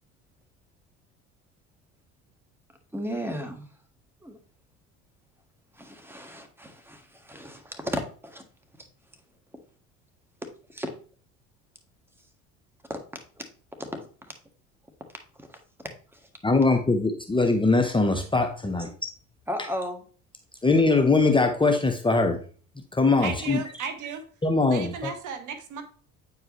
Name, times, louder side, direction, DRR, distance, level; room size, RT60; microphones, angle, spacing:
voice 1, 2.9-3.7 4.2-4.4 5.7-8.4 10.7-10.9 12.9-13.0 13.8-13.9 15.4-15.5 16.1-16.3 19.5-20.0, equal, 5° right, 5 dB, 1.8 m, -34 dB
voice 2, 16.4-18.9 20.6-22.4 22.9-23.6 24.4-25.1, left 3 dB, 15° left, 4 dB, 0.9 m, -22 dB
voice 3, 23.2-24.2 24.7-25.8, right 6 dB, 55° right, 8 dB, 1.3 m, -35 dB
8.8 x 4.7 x 3.2 m, 0.42 s
hypercardioid pair, 70°, 36 cm